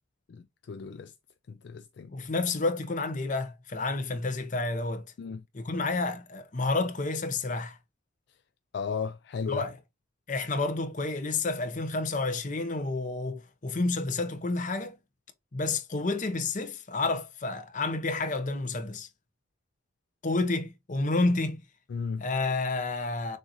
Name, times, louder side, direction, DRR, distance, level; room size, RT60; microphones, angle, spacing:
voice 1, 0.3-1.1 1.5-2.2 5.2-5.4 8.7-9.6 21.9-22.3, left 5 dB, 60° left, 0.3 m, -35 dB
voice 2, 2.1-5.1 5.5-7.8 9.5-9.8 10.3-14.9 15.5-19.1 20.2-21.6 22.2-23.4, left 3 dB, 40° left, 0.7 m, -30 dB
6.5 x 2.6 x 2.9 m
head